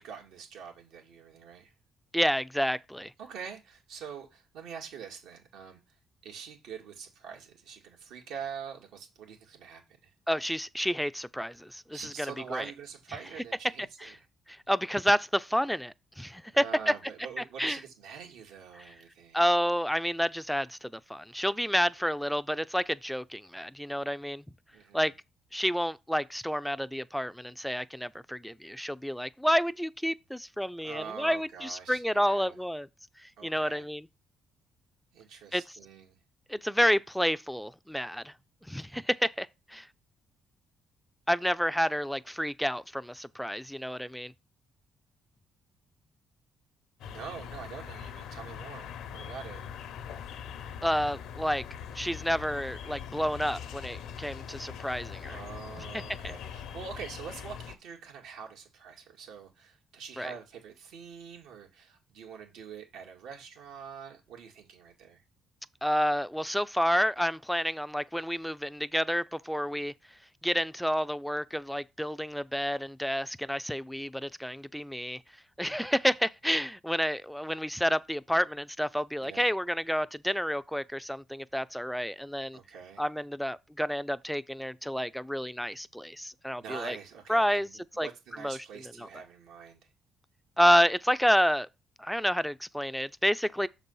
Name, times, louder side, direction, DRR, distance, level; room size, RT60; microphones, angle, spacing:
voice 1, 0.0-1.7 3.2-5.8 6.2-10.1 11.9-14.3 16.5-19.4 24.7-25.1 30.8-32.6 33.4-33.9 35.1-36.2 47.1-49.6 55.3-65.2 79.2-79.5 82.5-83.0 86.6-89.8, right 6 dB, 90° right, 2.1 m, -44 dB
voice 2, 2.1-3.1 10.3-12.6 14.0-14.1 14.5-16.6 17.4-17.8 18.8-18.9 19.3-24.4 24.9-25.1 25.5-32.9 33.2-34.1 35.5-35.8 36.5-38.3 38.7-39.9 41.3-44.3 50.8-51.6 51.9-55.4 56.2-56.3 60.2-60.3 65.8-69.9 70.4-75.2 75.6-82.6 83.0-87.0 87.3-87.7 88.0-88.1 88.4-88.6 89.0-89.1 90.6-91.7 92.0-93.7, equal, ahead, 0.4 m, -29 dB
sound 1, 47.0-57.7, left 8 dB, 80° left, 0.9 m, -42 dB
6.8 x 4.1 x 5.4 m
cardioid pair, 100°, 0 cm